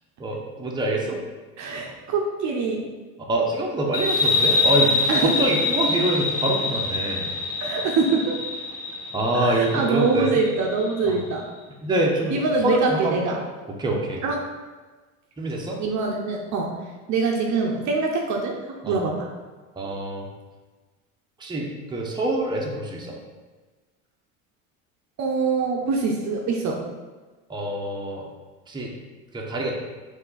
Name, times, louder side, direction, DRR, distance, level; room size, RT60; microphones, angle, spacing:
voice 1, 0.2-1.2 3.2-7.3 9.1-10.4 11.1-11.2 11.8-13.4 13.7-14.2 15.4-15.8 18.8-19.0 19.8-20.3 21.4-23.2 27.5-28.3 28.7-28.9 29.3-29.7, right 1 dB, 10° right, -2 dB, 0.8 m, -25 dB
voice 2, 1.6-2.8 5.1-5.3 7.6-8.4 9.3-11.5 12.3-13.4 14.2-14.5 15.8-16.7 17.1-19.3 25.2-26.8, right 4 dB, 45° right, 1 dB, 0.7 m, -24 dB
sound 1, 3.9-11.1, left 3 dB, 70° left, 1.2 m, -25 dB
4.4 x 2.8 x 4.1 m, 1.3 s
hypercardioid pair, 80°, 41 cm